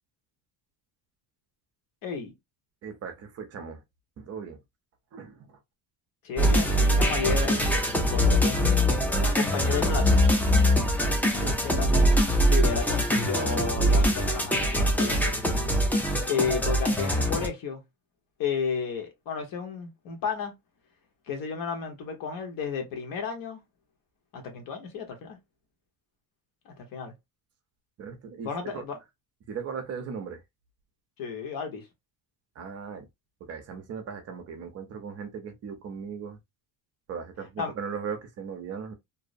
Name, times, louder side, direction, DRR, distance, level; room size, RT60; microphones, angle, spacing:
voice 1, 2.0-2.3 6.2-10.3 11.6-15.4 16.3-17.8 18.4-20.5 21.3-23.6 24.3-25.4 26.6-27.1 28.4-29.0 31.2-31.9 37.6-37.7, left 6 dB, 60° left, 1.1 m, -33 dB
voice 2, 2.8-3.8 4.2-4.6 5.1-5.6 11.4-11.6 28.0-28.8 29.5-30.4 32.6-33.1 33.4-36.4 37.1-38.9, right 6 dB, 40° right, 0.6 m, -38 dB
sound 1, 6.4-17.5, equal, 5° left, 0.3 m, -23 dB
2.6 x 2.0 x 2.5 m
cardioid pair, 145°, 38 cm